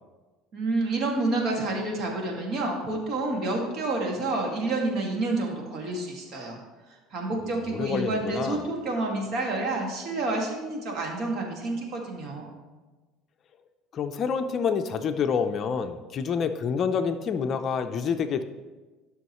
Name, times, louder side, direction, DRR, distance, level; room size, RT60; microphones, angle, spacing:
voice 1, 0.5-6.6 7.1-12.6, right 2 dB, 50° right, 0 dB, 1.9 m, -29 dB
voice 2, 7.7-8.6 13.9-18.4, left 6 dB, 40° left, 8 dB, 0.5 m, -27 dB
12.5 x 6.3 x 3.0 m, 1.2 s
cardioid pair, 125°, 0 cm